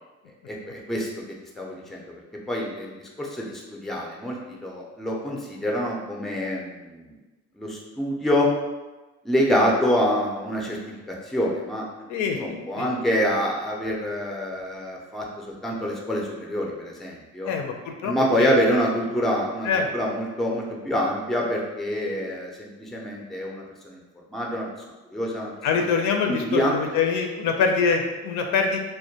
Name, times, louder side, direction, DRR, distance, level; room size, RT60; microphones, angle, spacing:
voice 1, 0.5-1.1 1.6-2.0 2.5-7.1 7.6-8.5 9.2-10.8 11.1-11.9 12.4-17.5 18.0-24.0 24.3-24.7 25.1-25.8 26.3-26.7, equal, ahead, -1 dB, 0.3 m, -26 dB
voice 2, 12.1-12.9 17.4-18.6 19.6-19.9 25.6-28.8, left 5 dB, 75° left, 3 dB, 0.4 m, -24 dB
2.2 x 2.1 x 2.7 m, 1.1 s
cardioid pair, 105°, 29 cm